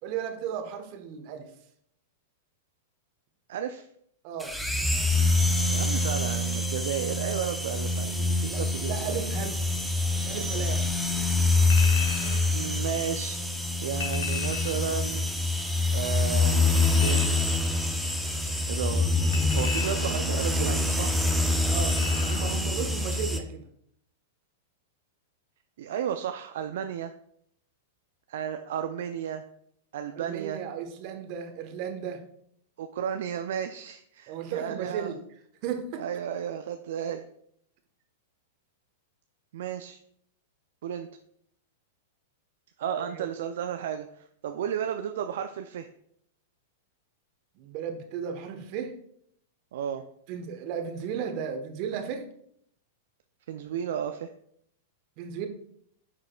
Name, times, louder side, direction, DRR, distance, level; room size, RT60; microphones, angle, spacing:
voice 1, 0.0-1.5 4.2-4.5 8.4-8.6 8.9-9.7 10.1-10.8 21.7-23.7 30.1-32.2 34.3-35.2 35.6-36.0 43.1-43.3 47.6-48.9 50.3-52.2 55.2-55.5, right 8 dB, 50° right, 6 dB, 1.1 m, -35 dB
voice 2, 3.5-3.9 5.7-9.2 12.2-13.4 13.8-15.3 15.9-17.4 18.7-21.2 25.8-27.1 28.3-29.5 29.9-30.6 32.8-35.2 36.0-37.3 39.5-40.0 40.8-41.1 42.8-45.9 49.7-50.0 53.5-54.3, right 8 dB, 65° right, 8 dB, 0.4 m, -33 dB
sound 1, 4.4-23.4, left 2 dB, ahead, 0.8 m, -26 dB
Chink clink, 11.7-12.5 14.0-14.9 16.7-17.5 19.3-20.3 21.9-22.5 22.9-23.0, left 6 dB, 70° left, 1.1 m, -36 dB
10.0 x 4.7 x 2.3 m, 0.70 s
hypercardioid pair, 105°, 0 cm